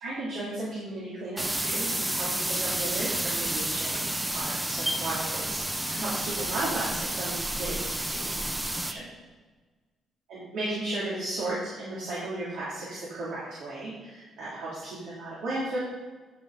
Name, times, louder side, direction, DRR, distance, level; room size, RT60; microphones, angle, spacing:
voice 1, 0.0-8.5 8.9-9.0 10.3-15.8, right 2 dB, 85° right, -8 dB, 2.9 m, -35 dB
sound 1, 1.4-8.9, right 1 dB, 15° right, 0.7 m, -30 dB
12.0 x 5.6 x 3.9 m, 1.3 s
cardioid pair, 90°, 0 cm